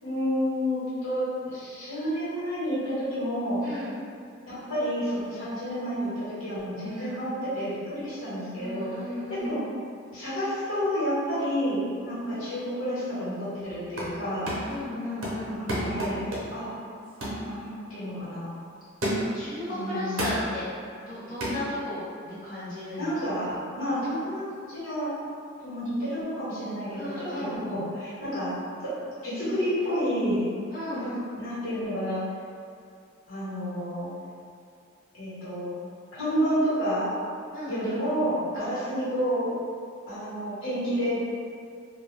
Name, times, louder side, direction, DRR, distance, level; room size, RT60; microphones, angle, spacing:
voice 1, 0.0-3.7 4.5-8.9 9.3-9.6 10.1-14.5 15.5-16.2 16.5-16.7 17.4-18.5 19.7-20.2 23.0-25.1 25.6-28.5 28.8-30.5 30.9-31.0 31.4-32.2 33.3-34.1 35.1-35.7 36.1-37.1 37.7-39.5 40.1-41.2, equal, 85° left, -12 dB, 1.3 m, -30 dB
voice 2, 3.6-3.9 6.8-7.2 8.6-9.6 12.3-12.5 14.6-15.6 19.2-20.6 21.0-23.1 23.8-24.0 26.9-27.6 30.7-31.2 37.5-38.0, left 1 dB, 45° left, -13 dB, 0.8 m, -35 dB
sound 1, 13.7-14.2 14.5-14.8 15.2-16.7 17.2-17.5 17.9-18.1 19.0-19.4 20.2-20.5 21.4-21.6, right 1 dB, 80° right, 0.8 m, -30 dB
2.3 x 2.2 x 3.2 m, 2.3 s
head